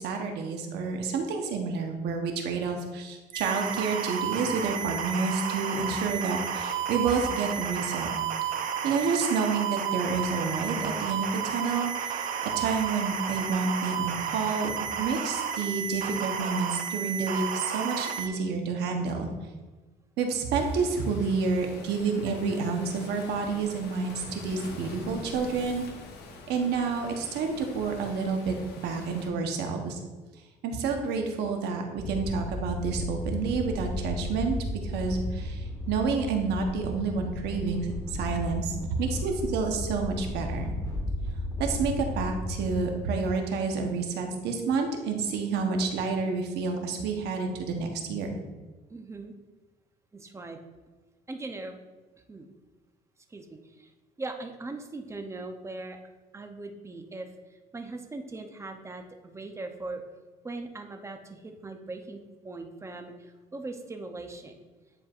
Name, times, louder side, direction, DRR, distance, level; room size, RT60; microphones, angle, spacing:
voice 1, 0.0-8.1 8.8-19.3 20.2-25.8 26.5-30.0 30.6-34.6 34.8-40.7 41.6-48.4, right 4 dB, 80° right, 3 dB, 1.1 m, -29 dB
sound 1, 3.3-18.3, right 7 dB, 55° right, 0.6 m, -32 dB
Waves surf, 20.5-29.3, left 3 dB, 80° left, 1.1 m, -44 dB
sound 2, 32.0-42.9, left 1 dB, 20° left, 1.4 m, -34 dB
voice 2, 48.9-49.3 50.1-50.6 51.3-51.8 52.3-52.5 53.3-53.9 54.2-56.0 56.3-57.3 57.7-60.0 60.4-64.5, right 2 dB, 15° right, 5 dB, 0.7 m, -40 dB
9.7 x 4.5 x 2.5 m, 1.3 s
cardioid pair, 110°, 17 cm